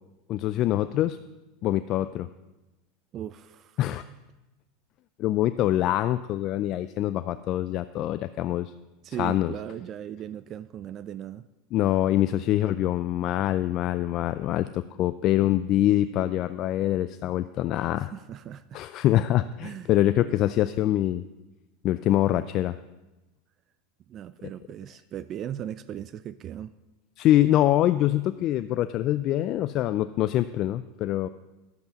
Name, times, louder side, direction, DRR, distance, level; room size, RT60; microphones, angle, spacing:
voice 1, 0.3-1.2 1.6-2.3 3.8-4.0 5.2-8.7 9.2-9.5 11.7-18.1 18.7-21.2 21.8-22.8 27.2-31.3, left 13 dB, 50° left, 12 dB, 0.3 m, -24 dB
voice 2, 3.1-3.8 9.0-11.5 18.0-18.8 19.6-20.0 24.1-26.7, right 10 dB, 40° right, 15 dB, 0.3 m, -38 dB
11.0 x 8.1 x 5.2 m, 1.1 s
hypercardioid pair, 100°, 0 cm